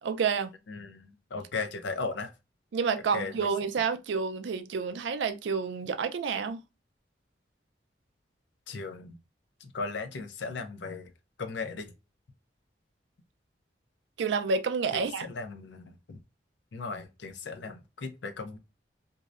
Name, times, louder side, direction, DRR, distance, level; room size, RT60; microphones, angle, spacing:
voice 1, 0.0-0.5 2.7-6.6 14.2-15.3, right 5 dB, 80° right, 0.4 m, -29 dB
voice 2, 0.7-2.3 3.1-3.5 8.7-9.1 9.6-11.1 11.4-11.9 14.9-16.2 16.7-18.6, left 4 dB, 80° left, 0.5 m, -37 dB
2.6 x 2.0 x 2.4 m
head